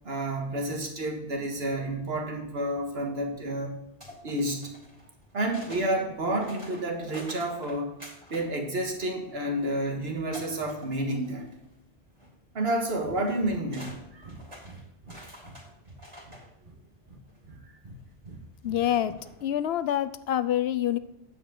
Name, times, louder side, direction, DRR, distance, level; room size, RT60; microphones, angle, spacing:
voice 1, 0.0-3.8 4.2-4.7 5.3-7.9 8.3-11.5 12.5-14.3, right 1 dB, 70° right, 2 dB, 1.8 m, -30 dB
sound 1, 4.0-5.9 6.3-8.5 8.8-9.7 10.3-11.7 12.1-12.3 13.3-13.4 13.7-16.5 17.3-17.4 18.8-19.5, equal, 25° right, 2.7 m, -47 dB
Breathing, 13.0-13.2 13.4-13.6 13.8-14.0 14.2-15.6 15.8-16.8 17.1-18.0 18.2-19.1, right 2 dB, 50° right, 1.5 m, -47 dB
voice 2, 18.6-21.0, left 11 dB, 75° left, 13 dB, 0.8 m, -27 dB
9.3 x 8.1 x 3.8 m, 0.85 s
omnidirectional pair, 1.1 m